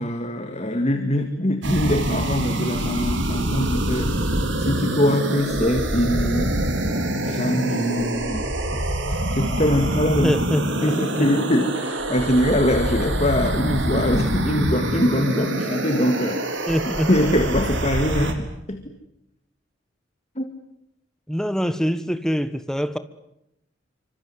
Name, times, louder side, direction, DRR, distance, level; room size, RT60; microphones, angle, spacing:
voice 1, 0.0-4.2 4.6-6.7 7.2-10.3 10.8-16.7 17.1-18.8 20.4-20.5, left 1 dB, 35° left, 7 dB, 2.1 m, -23 dB
sound 1, 1.6-18.3, right 1 dB, 65° right, 4.1 m, -25 dB
voice 2, 10.1-11.3 16.7-17.1 21.3-23.0, equal, 5° left, 12 dB, 1.3 m, -24 dB
27.5 x 25.5 x 8.0 m, 0.84 s
head